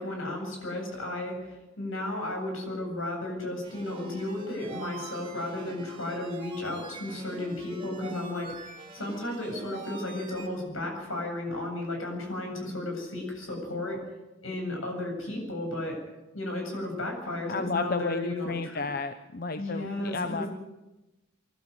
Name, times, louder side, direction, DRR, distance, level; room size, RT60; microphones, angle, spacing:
voice 1, 0.0-14.0 14.4-16.0 16.3-18.8 19.6-20.5, left 1 dB, 80° left, 3 dB, 7.9 m, -34 dB
sound 1, 3.6-10.5, right 3 dB, 25° right, 2.6 m, -44 dB
voice 2, 17.5-20.5, left 3 dB, 45° left, 9 dB, 0.8 m, -32 dB
24.5 x 12.0 x 9.7 m, 1.0 s
head